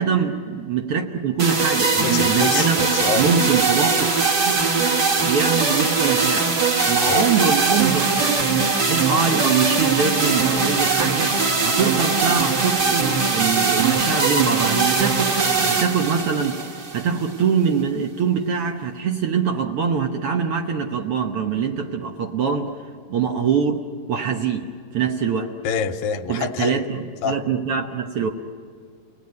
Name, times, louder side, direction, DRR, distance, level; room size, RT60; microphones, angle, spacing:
voice 1, 0.0-2.8 3.1-4.2 4.4-4.6 5.2-6.6 6.9-11.4 11.6-22.7 23.1-23.8 24.1-25.5 26.3-28.3, right 6 dB, 70° right, 1.3 m, -23 dB
sound 1, 1.4-17.4, right 4 dB, 40° right, 1.6 m, -21 dB
voice 2, 2.0-3.3 7.0-7.3 25.6-26.8 27.2-27.4, left 6 dB, 90° left, 2.6 m, -26 dB
29.5 x 19.5 x 9.6 m
omnidirectional pair, 4.0 m